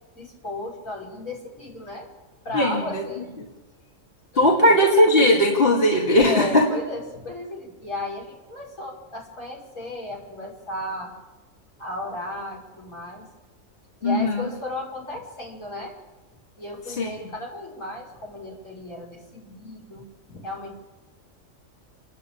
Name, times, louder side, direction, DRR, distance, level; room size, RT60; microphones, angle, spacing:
voice 1, 0.1-2.1 2.4-3.3 4.3-4.8 6.2-11.1 11.8-13.3 14.0-15.9 16.6-20.8, left 1 dB, 75° left, -2 dB, 6.3 m, -34 dB
voice 2, 2.5-3.0 4.4-6.7 14.0-14.5 17.0-17.1, left 1 dB, 45° left, -2 dB, 2.7 m, -18 dB
29.5 x 10.5 x 8.7 m, 1.1 s
omnidirectional pair, 1.4 m